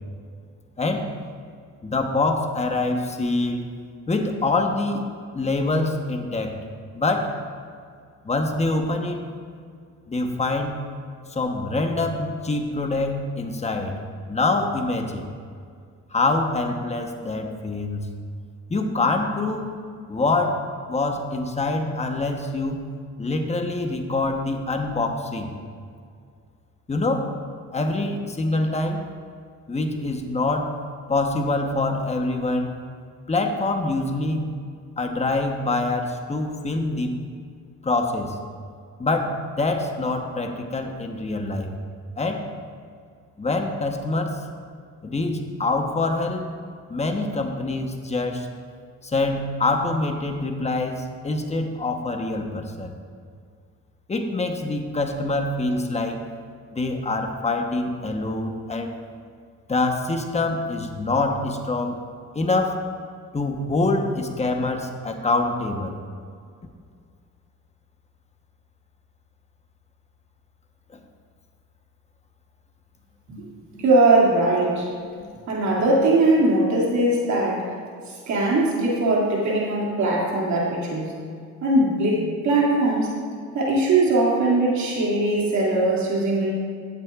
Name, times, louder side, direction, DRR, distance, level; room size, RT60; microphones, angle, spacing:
voice 1, 0.8-1.1 1.8-3.7 4.1-5.0 5.3-6.6 6.9-7.4 8.2-9.3 10.1-10.8 11.3-14.0 14.3-15.3 16.1-18.1 18.7-19.7 20.1-22.8 23.2-25.5 26.9-27.3 27.7-29.1 29.7-30.8 31.1-32.7 33.3-34.5 35.0-37.1 37.8-38.3 39.0-41.7 42.2-42.4 43.4-44.4 45.0-46.4 46.9-48.5 49.0-52.9 54.1-56.2 56.7-58.9 59.7-62.0 62.3-62.8 63.3-66.0, left 2 dB, 20° left, 4 dB, 1.0 m, -25 dB
voice 2, 73.7-74.9 75.5-77.7 78.3-81.1 81.6-83.2 83.5-86.5, right 2 dB, 70° right, -4 dB, 2.5 m, -20 dB
14.5 x 7.7 x 2.5 m, 2.2 s
cardioid pair, 90°, 30 cm